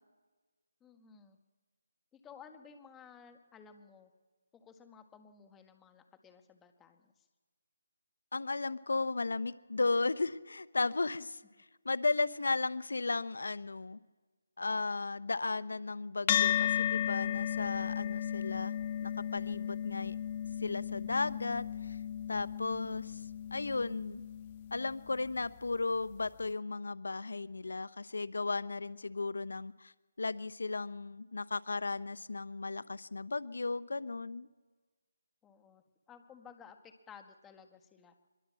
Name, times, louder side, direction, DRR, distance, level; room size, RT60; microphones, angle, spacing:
voice 1, 0.8-1.4 2.1-4.1 4.5-7.3 35.4-38.1, left 7 dB, 10° left, 7 dB, 1.5 m, -56 dB
voice 2, 8.3-11.4 11.8-14.0 14.6-18.7 19.0-20.1 20.6-22.0 22.3-23.2 23.5-24.2 24.7-29.9 30.2-34.5, left 3 dB, 75° left, 16 dB, 0.9 m, -35 dB
sound 1, 16.3-24.9, left 10 dB, 25° left, 0.8 m, -34 dB
24.0 x 22.0 x 7.6 m, 1.4 s
figure-of-eight pair, 165°, 0 cm